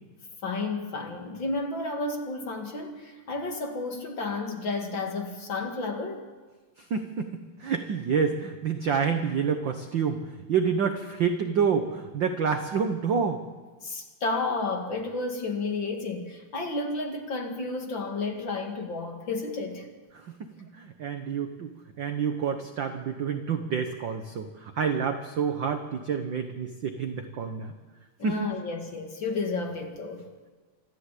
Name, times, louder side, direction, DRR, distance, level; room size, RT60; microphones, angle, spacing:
voice 1, 0.4-6.2 13.8-19.9 28.2-30.2, left 3 dB, 40° left, 3 dB, 2.5 m, -32 dB
voice 2, 6.9-13.4 20.4-21.7 22.0-27.7 28.2-28.5, right 6 dB, 65° right, 7 dB, 1.1 m, -28 dB
25.5 x 14.0 x 8.4 m, 1.4 s
omnidirectional pair, 3.5 m